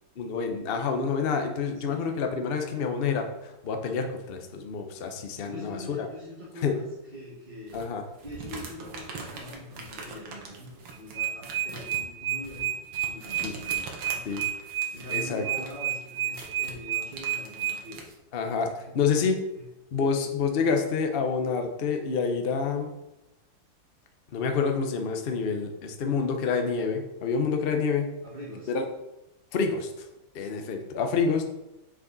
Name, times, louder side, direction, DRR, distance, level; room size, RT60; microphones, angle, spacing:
voice 1, 0.2-6.1 6.6-6.7 7.7-8.0 13.4-13.5 14.3-14.4 15.1-15.4 18.3-19.4 19.9-22.9 24.3-28.1 28.7-28.8 29.5-29.9 30.3-31.4, left 5 dB, 55° left, 4 dB, 0.6 m, -28 dB
voice 2, 1.7-2.2 5.4-7.9 8.2-12.7 13.0-14.4 14.9-18.1 18.9-19.0 19.5-19.6 28.2-28.7 31.2-31.4, left 1 dB, 25° right, -8 dB, 1.7 m, -43 dB
sound 1, 7.7-18.1, right 4 dB, 75° right, 1.8 m, -43 dB
sound 2, 10.9-17.7, right 12 dB, 55° right, 1.5 m, -29 dB
6.4 x 5.0 x 4.0 m, 0.91 s
omnidirectional pair, 2.1 m